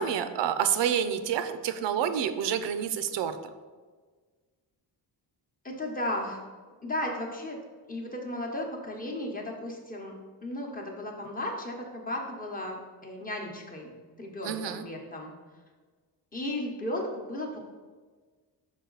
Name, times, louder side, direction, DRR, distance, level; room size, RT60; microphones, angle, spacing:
voice 1, 0.0-3.4 14.4-14.8, right 8 dB, 85° right, 10 dB, 0.6 m, -28 dB
voice 2, 5.6-6.4 6.8-10.2 10.4-15.3 16.3-17.6, left 1 dB, 20° left, 0 dB, 0.9 m, -35 dB
5.7 x 5.0 x 3.9 m, 1.4 s
wide cardioid pair, 165°, 43 cm